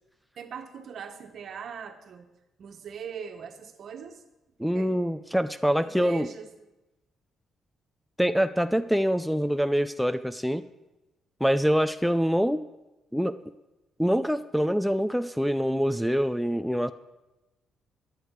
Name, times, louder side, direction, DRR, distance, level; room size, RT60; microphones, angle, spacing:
voice 1, 0.4-2.3 2.6-4.2 4.6-4.9 5.8-6.5, right 7 dB, 60° right, 6 dB, 1.4 m, -41 dB
voice 2, 4.6-6.3 8.2-10.6 11.4-12.6 13.1-13.4 14.0-16.9, equal, ahead, 10 dB, 0.4 m, -25 dB
13.0 x 9.6 x 4.7 m, 1.0 s
cardioid pair, 90°, 0 cm